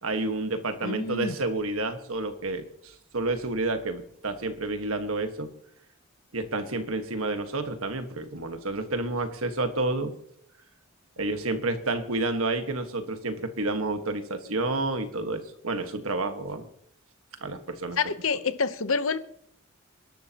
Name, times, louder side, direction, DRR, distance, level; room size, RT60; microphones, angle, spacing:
voice 1, 0.0-5.5 6.3-10.1 11.2-16.7 17.4-18.0, right 2 dB, 75° right, 1.6 m, -30 dB
voice 2, 0.8-1.4 18.0-19.2, left 5 dB, 70° left, 0.9 m, -27 dB
27.5 x 12.0 x 3.0 m
head